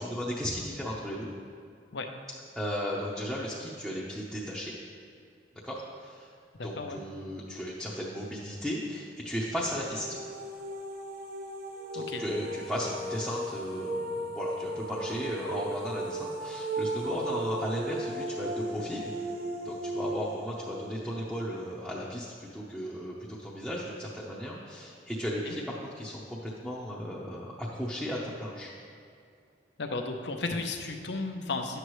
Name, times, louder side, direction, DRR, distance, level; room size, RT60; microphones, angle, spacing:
voice 1, 0.0-1.3 2.5-4.7 5.6-6.3 6.6-10.1 11.9-19.3 19.6-28.7, equal, ahead, -6 dB, 0.8 m, -35 dB
voice 2, 6.5-7.0 11.9-12.2 25.5-25.6 29.8-31.8, left 3 dB, 60° left, 4 dB, 0.7 m, -34 dB
sound 1, 9.4-22.3, right 1 dB, 50° right, 0.7 m, -36 dB
11.0 x 7.9 x 3.2 m, 2.3 s
head